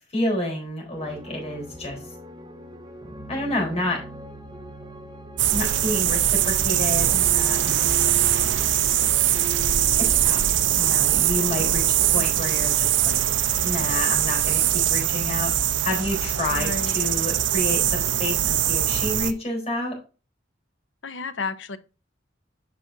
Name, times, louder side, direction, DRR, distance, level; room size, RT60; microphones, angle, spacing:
voice 1, 0.1-2.0 3.3-4.0 5.5-7.9 10.0-10.4 10.7-13.2 13.6-15.5 15.8-20.0, left 1 dB, 35° left, 4.0 m, -29 dB
sound 1, 1.0-12.9, right 1 dB, 25° right, 1.0 m, -39 dB
sound 2, 5.4-19.3, right 11 dB, 80° right, 0.6 m, -22 dB
voice 2, 16.6-17.0 21.0-21.8, left 4 dB, 75° left, 0.7 m, -32 dB
8.6 x 5.9 x 2.7 m
head